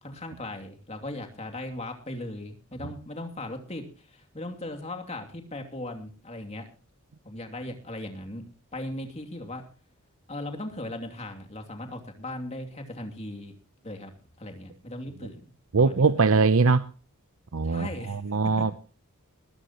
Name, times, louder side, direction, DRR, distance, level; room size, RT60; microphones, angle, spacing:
voice 1, 0.0-6.6 7.2-8.5 8.7-9.6 10.3-13.5 13.8-14.1 14.4-15.4 15.8-16.2 17.6-18.2 18.6-18.7, left 1 dB, 30° left, 2.8 m, -38 dB
voice 2, 15.7-16.9 17.5-18.7, right 4 dB, 65° right, 0.7 m, -22 dB
21.0 x 13.0 x 3.0 m
head